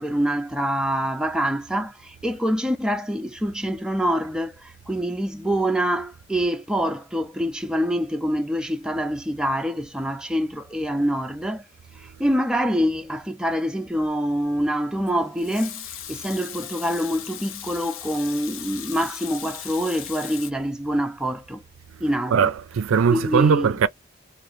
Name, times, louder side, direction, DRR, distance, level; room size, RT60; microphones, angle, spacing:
voice 1, 0.0-11.6 12.0-21.6 22.0-22.5 23.1-23.8, equal, 5° right, 0.3 m, -25 dB
Water tap faucet / Sink (filling or washing) / Liquid, 15.1-20.5, left 10 dB, 80° left, 0.5 m, -38 dB
voice 2, 22.3-23.9, right 6 dB, 90° right, 0.4 m, -20 dB
2.5 x 2.5 x 3.0 m
head